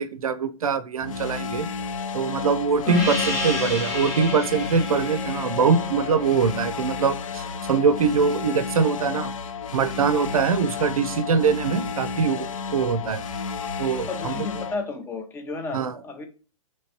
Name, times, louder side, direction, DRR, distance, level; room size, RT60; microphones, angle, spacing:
voice 1, 0.0-1.7 2.1-9.3 9.7-13.2 13.8-14.3 15.7-16.0, right 5 dB, 85° right, 12 dB, 0.5 m, -23 dB
sound 1, 1.0-14.7, left 5 dB, 70° left, 0.4 m, -32 dB
Gong, 2.9-7.9, left 2 dB, 35° left, 0.9 m, -31 dB
voice 2, 14.1-16.3, left 3 dB, 15° left, 7 dB, 0.5 m, -33 dB
3.2 x 3.1 x 2.8 m, 0.35 s
hypercardioid pair, 120°, 18 cm